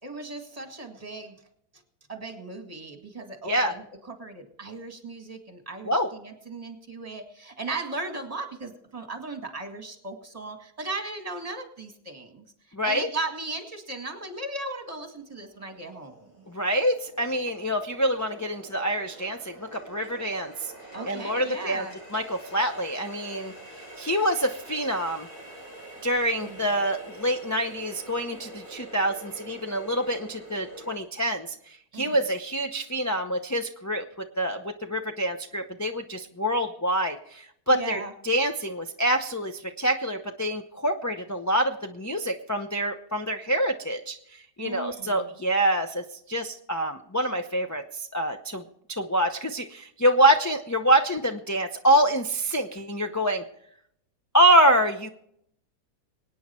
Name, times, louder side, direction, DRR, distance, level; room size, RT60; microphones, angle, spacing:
voice 1, 0.0-1.4 2.1-12.4 12.8-16.3 20.9-21.9 26.4-26.8 31.9-32.2 37.7-38.1 44.6-45.3, right 2 dB, 25° right, 5 dB, 2.0 m, -37 dB
voice 2, 12.7-13.1 16.5-20.7 21.1-21.9 22.1-23.5 24.0-25.3 26.0-34.0 34.4-48.6 48.9-53.4 54.3-55.1, right 1 dB, 20° left, 3 dB, 0.5 m, -26 dB
Water tap faucet, 14.5-14.6 15.2-31.0, right 1 dB, 80° left, 6.4 m, -46 dB
24.0 x 9.3 x 4.4 m, 0.71 s
omnidirectional pair, 1.6 m